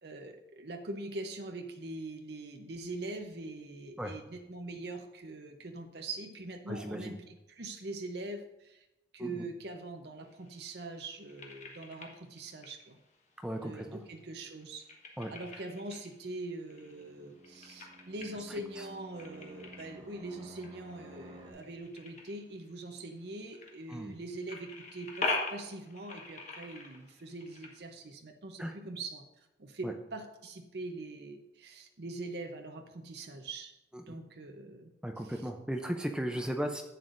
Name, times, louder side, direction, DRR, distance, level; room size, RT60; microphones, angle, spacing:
voice 1, 0.0-8.9 9.1-13.0 13.6-14.8 15.3-33.7 34.1-34.9 35.2-35.5 36.3-36.4, right 2 dB, 60° right, 4 dB, 0.7 m, -43 dB
voice 2, 6.7-7.2 9.2-9.4 13.4-14.0 15.2-15.3 23.9-24.2 28.6-28.7 29.8-29.9 34.1-34.2 35.0-36.8, equal, 5° right, 4 dB, 0.5 m, -36 dB
sound 1, 10.2-27.8, left 3 dB, 40° left, 1.2 m, -44 dB
Fixed-wing aircraft airplane, 16.6-21.5, right 1 dB, 30° right, 1.2 m, -52 dB
11.0 x 8.0 x 2.6 m, 0.93 s
head